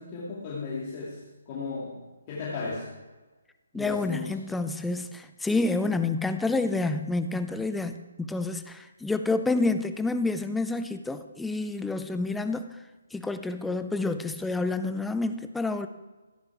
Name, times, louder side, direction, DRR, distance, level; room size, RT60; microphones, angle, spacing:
voice 1, 0.0-2.0 2.3-2.9 3.7-4.6, left 4 dB, 25° left, -7 dB, 2.4 m, -35 dB
voice 2, 3.7-12.8 13.1-15.9, left 3 dB, 5° left, 9 dB, 0.4 m, -28 dB
15.0 x 8.8 x 4.8 m, 1.2 s
hypercardioid pair, 170°, 0 cm